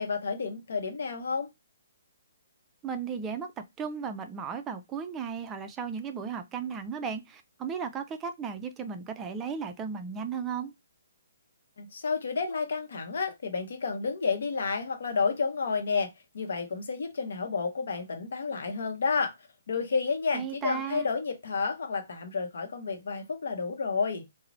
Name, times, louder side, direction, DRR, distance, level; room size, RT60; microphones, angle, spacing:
voice 1, 0.0-1.5 11.8-19.4 19.7-24.3, left 5 dB, 65° left, 0.7 m, -30 dB
voice 2, 2.8-10.7 20.3-21.1, right 6 dB, 15° right, 0.3 m, -35 dB
2.8 x 2.0 x 2.5 m
figure-of-eight pair, 135°, 0 cm